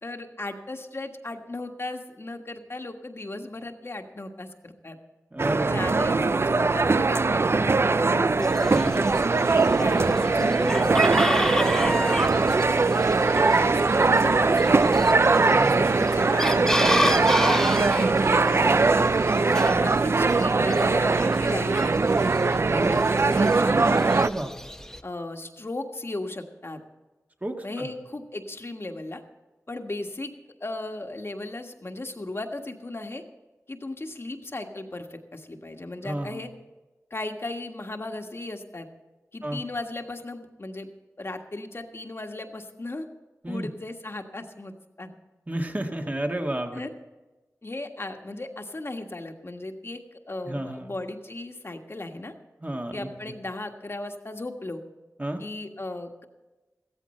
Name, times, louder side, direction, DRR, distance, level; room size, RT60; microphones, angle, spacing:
voice 1, 0.0-5.0 5.6-8.9 9.5-12.5 13.6-15.1 15.7-17.1 17.8-22.3 22.9-24.1 25.0-26.8 27.6-29.2 29.7-30.3 30.6-33.2 33.7-36.5 37.1-38.9 39.3-40.9 41.2-43.0 43.5-45.1 46.7-46.9 47.6-52.3 52.9-54.8 55.4-56.3, left 2 dB, 45° left, 5 dB, 1.5 m, -36 dB
voice 2, 5.3-5.7 8.7-9.7 15.5-15.9 22.7-23.0 24.1-24.5 27.4-27.9 36.0-36.4 39.4-39.6 43.4-43.7 45.5-46.8 50.4-50.9 52.6-53.1 55.2-55.4, right 1 dB, 30° right, 3 dB, 1.8 m, -31 dB
sound 1, 5.4-24.3, right 3 dB, 50° right, 0.4 m, -21 dB
Chicken rooster, 8.4-25.0, left 1 dB, 10° left, 0.9 m, -32 dB
15.5 x 14.5 x 4.3 m, 1.2 s
wide cardioid pair, 55°, 6 cm